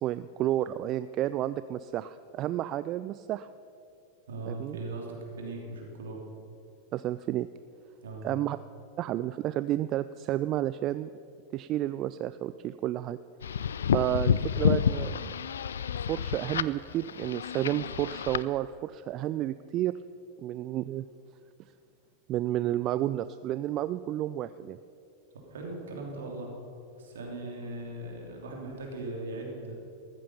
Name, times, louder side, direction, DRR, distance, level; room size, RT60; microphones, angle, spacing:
voice 1, 0.0-3.5 4.5-4.8 6.9-7.5 8.2-8.6 9.0-11.1 11.5-13.2 13.9-15.3 16.1-20.0 20.4-21.1 22.3-24.8, right 13 dB, 35° right, 13 dB, 0.3 m, -31 dB
voice 2, 4.3-6.2 8.0-8.3 25.3-26.5 26.9-29.7, right 2 dB, 65° right, 0 dB, 3.1 m, -39 dB
sound 1, 13.4-18.4, left 8 dB, 65° left, 0.4 m, -29 dB
14.0 x 14.0 x 5.7 m, 2.6 s
figure-of-eight pair, 90°, 0 cm